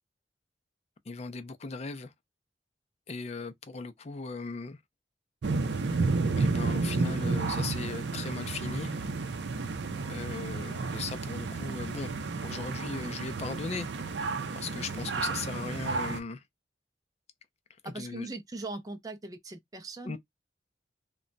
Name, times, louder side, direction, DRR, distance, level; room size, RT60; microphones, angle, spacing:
voice 1, 1.1-2.1 3.1-4.8 6.4-8.9 10.1-12.1 12.4-13.9 14.5-16.4 18.0-18.3 20.0-20.2, left 4 dB, 40° left, 0.4 m, -38 dB
sound 1, 5.4-16.2, right 3 dB, 80° right, 0.5 m, -31 dB
voice 2, 17.8-20.2, right 2 dB, 20° right, 0.4 m, -40 dB
2.2 x 2.0 x 3.8 m
head